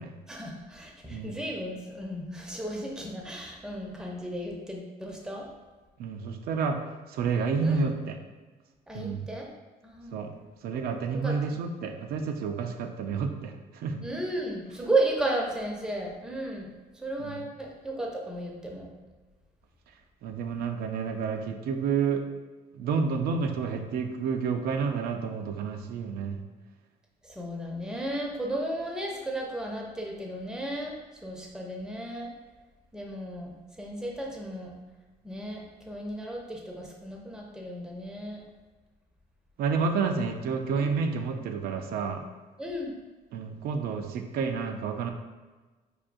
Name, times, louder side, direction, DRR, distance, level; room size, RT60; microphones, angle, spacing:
voice 1, 0.3-5.5 7.6-7.9 8.9-9.5 9.8-10.1 11.1-11.4 14.0-16.7 17.0-18.9 27.4-31.0 31.2-32.3 32.9-33.5 33.8-34.7 35.2-38.4 40.8-41.0 42.6-42.9, right 1 dB, 5° right, -1 dB, 0.6 m, -34 dB
voice 2, 6.0-6.8 7.1-8.2 8.9-9.3 10.1-10.3 10.6-14.0 17.2-17.4 20.2-22.2 22.7-26.4 39.6-42.2 43.3-45.1, right 5 dB, 65° right, 6 dB, 0.5 m, -30 dB
4.9 x 2.6 x 2.5 m, 1.3 s
cardioid pair, 110°, 17 cm